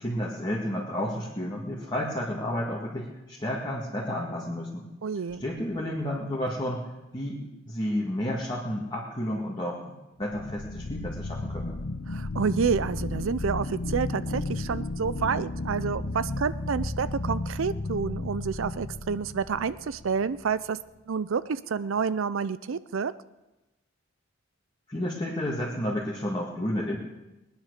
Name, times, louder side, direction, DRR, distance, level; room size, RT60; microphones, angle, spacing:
voice 1, 0.0-4.9 5.4-6.9 7.1-9.8 10.2-11.8 24.9-27.0, left 1 dB, 25° left, -4 dB, 2.0 m, -31 dB
voice 2, 5.0-5.4 12.1-20.8 21.1-23.1, right 6 dB, 75° right, 16 dB, 0.5 m, -29 dB
sound 1, 5.3-5.9 10.2-20.4, left 2 dB, 75° left, 1.0 m, -34 dB
20.0 x 10.5 x 6.6 m, 1.0 s
head